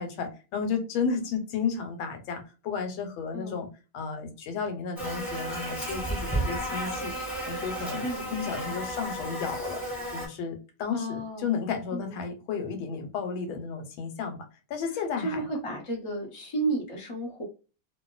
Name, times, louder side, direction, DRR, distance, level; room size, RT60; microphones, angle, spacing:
voice 1, 0.0-3.7 3.9-7.1 7.4-9.8 10.1-14.4 14.7-15.5, left 5 dB, 85° left, 6 dB, 1.5 m, -33 dB
voice 2, 3.3-3.7 8.0-8.3 10.9-11.5 11.9-12.2 15.2-17.4, right 2 dB, 45° left, -1 dB, 0.4 m, -32 dB
Buzz, 5.0-10.3, right 1 dB, 10° left, 1.4 m, -33 dB
2.8 x 2.7 x 2.3 m, 0.33 s
omnidirectional pair, 2.1 m